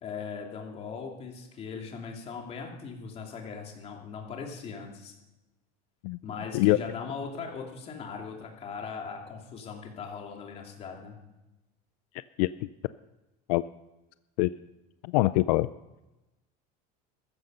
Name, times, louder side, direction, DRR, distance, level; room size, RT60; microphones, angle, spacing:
voice 1, 0.0-5.1 6.2-11.2, left 5 dB, 30° left, 1 dB, 2.9 m, -39 dB
voice 2, 12.4-12.7 13.5-13.6 14.4-14.5 15.0-15.7, left 19 dB, 80° left, 15 dB, 0.5 m, -24 dB
14.5 x 13.5 x 5.5 m, 1.0 s
cardioid pair, 155°, 20 cm